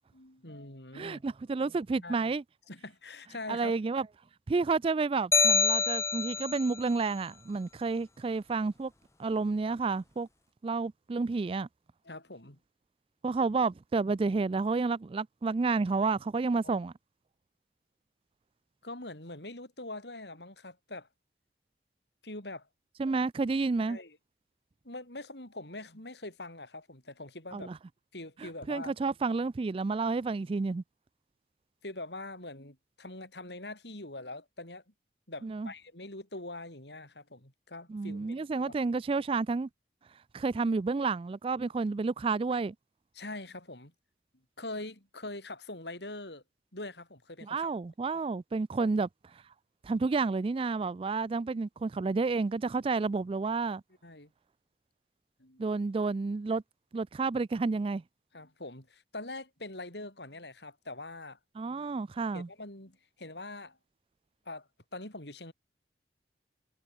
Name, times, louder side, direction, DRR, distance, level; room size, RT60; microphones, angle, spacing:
voice 1, 0.1-1.2 2.0-2.3 2.7-3.7 12.0-12.6 16.6-16.8 18.8-21.1 22.2-22.7 23.9-24.2 24.8-27.7 28.1-28.9 31.8-34.8 35.3-38.8 43.1-43.9 44.6-46.4 46.7-47.7 48.8-48.9 54.0-54.3 55.4-55.7 58.3-61.4 62.3-63.8 64.5-65.5, left 2 dB, 70° left, 7.7 m, -43 dB
voice 2, 0.9-2.4 3.5-4.1 4.5-8.9 9.2-10.3 10.6-11.7 13.2-16.9 23.0-24.0 27.5-27.8 28.4-30.8 35.4-35.7 37.9-39.7 40.3-42.7 47.4-49.1 49.8-53.8 55.6-56.6 56.9-58.0 61.6-62.5, right 4 dB, 30° right, 0.3 m, -30 dB
sound 1, 5.3-6.7, left 5 dB, 15° left, 0.7 m, -25 dB
head